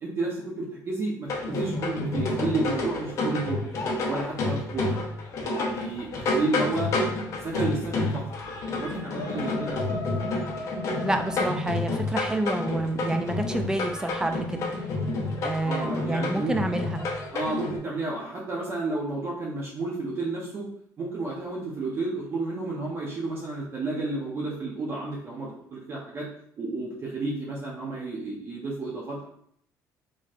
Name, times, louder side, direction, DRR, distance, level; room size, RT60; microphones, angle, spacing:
voice 1, 0.0-3.6 4.1-4.9 5.5-6.9 7.4-8.2 8.7-10.0 15.6-16.5 17.3-20.7 21.0-26.3 26.6-29.3, right 2 dB, 35° right, -4 dB, 0.8 m, -31 dB
sound 1, 1.3-17.8, left 2 dB, 50° left, 0.9 m, -29 dB
voice 2, 11.0-14.7 15.4-17.0, right 1 dB, 10° right, 7 dB, 0.4 m, -28 dB
4.2 x 3.1 x 2.5 m, 0.67 s
cardioid pair, 140°, 7 cm